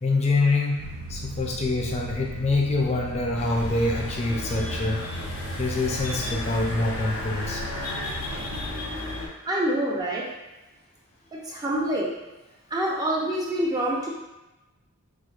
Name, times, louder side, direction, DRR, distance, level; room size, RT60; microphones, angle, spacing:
voice 1, 0.0-5.0 5.6-7.6, left 2 dB, 30° left, -1 dB, 0.5 m, -25 dB
sound 1, 0.8-8.7, right 1 dB, 80° right, 0.4 m, -38 dB
sound 2, 3.4-9.3, left 2 dB, 90° left, 0.8 m, -33 dB
voice 2, 9.5-10.2 11.5-12.1 12.7-14.1, right 1 dB, 15° right, -4 dB, 0.5 m, -26 dB
4.3 x 2.5 x 2.4 m, 1.0 s
head